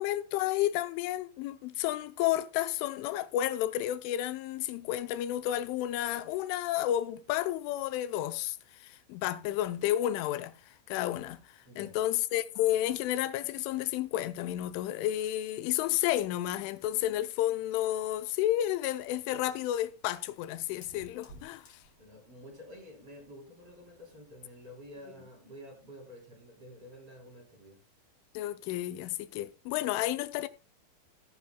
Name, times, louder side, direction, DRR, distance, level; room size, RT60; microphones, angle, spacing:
voice 1, 0.0-10.5 10.9-11.4 11.8-21.8 28.3-30.5, left 13 dB, 85° left, 3.1 m, -31 dB
voice 2, 11.7-12.0 22.0-27.8, equal, 35° right, 4.0 m, -50 dB
Fire, 18.9-25.0, right 1 dB, 30° left, 3.8 m, -59 dB
17.5 x 9.5 x 2.2 m
omnidirectional pair, 5.5 m